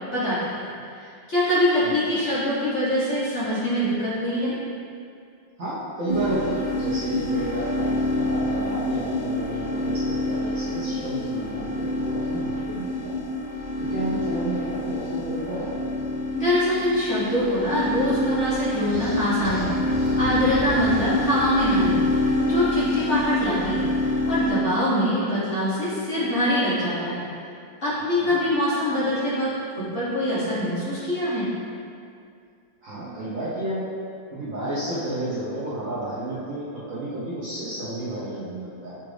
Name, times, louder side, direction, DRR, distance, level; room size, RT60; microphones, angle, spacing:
voice 1, 0.1-0.6 1.0-4.5 16.3-19.7 20.2-22.0 22.4-23.9 24.3-27.3 27.8-31.5, equal, 50° left, -10 dB, 0.9 m, -24 dB
voice 2, 1.8-2.2 5.6-13.2 13.8-15.7 28.2-28.3 32.8-33.9 34.3-39.0, right 1 dB, 55° right, -10 dB, 1.0 m, -31 dB
sound 1, 6.1-24.5, left 1 dB, 80° left, 1.9 m, -27 dB
sound 2, 18.5-22.1, right 1 dB, 85° right, 0.5 m, -36 dB
5.9 x 2.4 x 3.2 m, 2.4 s
omnidirectional pair, 2.0 m